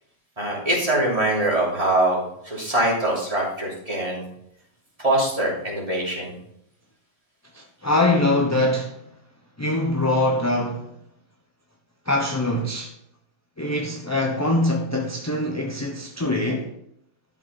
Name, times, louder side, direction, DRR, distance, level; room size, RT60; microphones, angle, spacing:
voice 1, 0.4-4.3 5.0-6.3, right 1 dB, 25° right, 3.1 m, -23 dB
voice 2, 7.5-9.0 9.6-10.9 12.1-12.9 13.6-16.7, left 1 dB, 15° left, 0.7 m, -23 dB
12.0 x 6.0 x 4.1 m
omnidirectional pair, 1.4 m